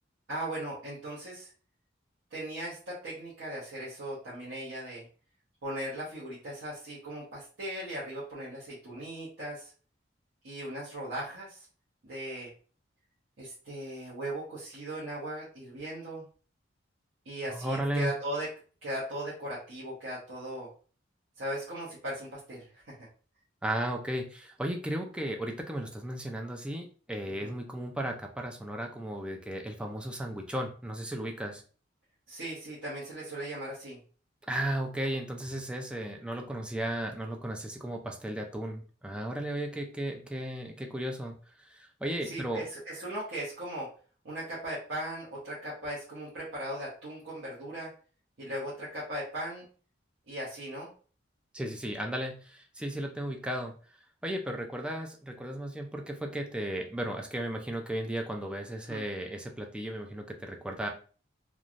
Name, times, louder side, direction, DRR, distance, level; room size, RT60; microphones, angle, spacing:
voice 1, 0.3-1.5 2.3-5.0 5.6-9.7 10.4-11.6 12.0-12.5 13.4-16.3 17.2-18.5 18.8-20.7 21.4-23.1 27.4-27.5 32.3-34.0 42.2-43.9 44.2-47.9 48.4-49.6 50.3-50.9 58.9-59.0, right 1 dB, 80° right, -9 dB, 1.0 m, -38 dB
voice 2, 17.5-18.1 23.6-31.6 34.5-42.6 51.5-53.7 54.2-60.9, right 1 dB, 5° right, 2 dB, 0.4 m, -35 dB
3.1 x 2.3 x 2.5 m, 0.40 s
head